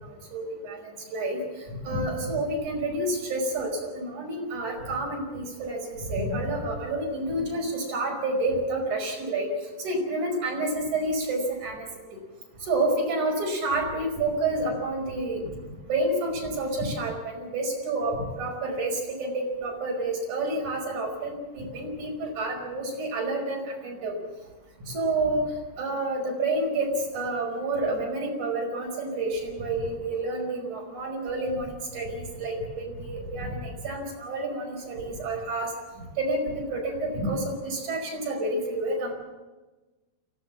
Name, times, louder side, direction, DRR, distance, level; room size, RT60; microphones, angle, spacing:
voice 1, 0.3-1.4 1.7-9.5 9.8-11.9 12.6-15.4 15.9-24.2 24.8-25.5 25.8-35.7 36.2-39.1, right 2 dB, 45° right, 1 dB, 6.4 m, -29 dB
24.0 x 17.0 x 7.3 m, 1.2 s
omnidirectional pair, 4.9 m